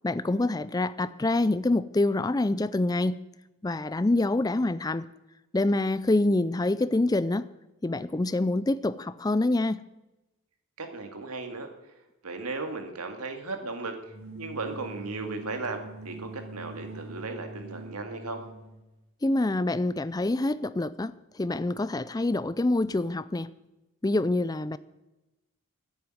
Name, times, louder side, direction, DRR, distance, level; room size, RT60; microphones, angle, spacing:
voice 1, 0.0-3.2 3.6-5.1 5.5-7.5 7.8-9.8 19.2-23.5 24.0-24.8, left 2 dB, 15° left, 16 dB, 0.4 m, -26 dB
voice 2, 10.8-11.7 12.2-14.0 14.4-18.4, right 3 dB, 85° right, 5 dB, 2.1 m, -36 dB
sound 1, 14.0-18.8, right 2 dB, 65° right, 3.6 m, -43 dB
10.5 x 8.5 x 9.2 m, 1.0 s
head